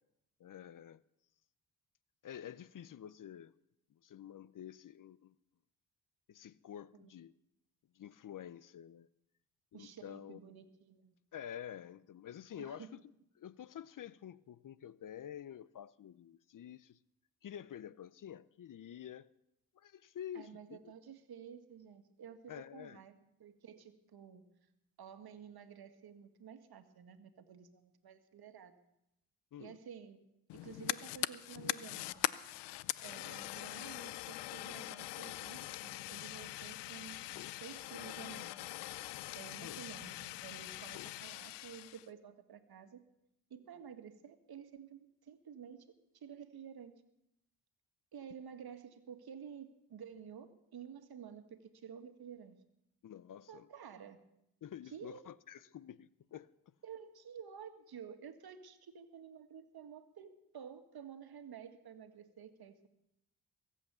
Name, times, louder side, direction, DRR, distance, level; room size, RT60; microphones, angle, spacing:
voice 1, 0.4-1.0 2.2-3.5 3.9-5.4 6.3-7.3 7.9-9.1 9.7-10.4 11.3-13.0 13.4-17.0 17.4-19.3 19.7-20.9 22.5-23.0 29.5-29.8 39.6-39.8 53.0-53.7 54.6-56.5, left 10 dB, 50° left, 0.7 m, -49 dB
voice 2, 9.7-11.1 12.6-12.9 20.3-23.1 23.4-24.4 25.0-28.7 29.6-30.2 30.5-32.3 33.0-38.6 39.3-43.0 43.5-45.9 46.1-46.9 48.1-52.6 53.5-54.2 54.9-55.3 56.8-62.9, right 7 dB, 65° right, 1.9 m, -52 dB
Fire, 30.5-42.1, left 18 dB, 90° left, 0.6 m, -42 dB
22.5 x 8.4 x 7.0 m
supercardioid pair, 55°, 41 cm